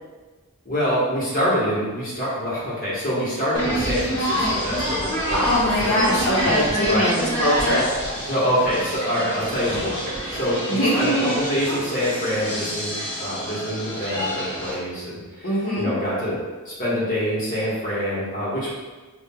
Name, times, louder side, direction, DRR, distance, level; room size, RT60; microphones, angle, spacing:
voice 1, 0.6-6.1 6.8-7.1 8.3-9.9 10.3-16.4 16.6-18.7, equal, 40° left, -7 dB, 1.1 m, -25 dB
sound 1, 3.5-14.7, equal, 20° left, 1.0 m, -27 dB
voice 2, 5.3-7.8 8.2-8.3 10.7-11.3 15.4-15.9, equal, 75° left, -7 dB, 1.1 m, -22 dB
5.5 x 2.4 x 2.2 m, 1.3 s
head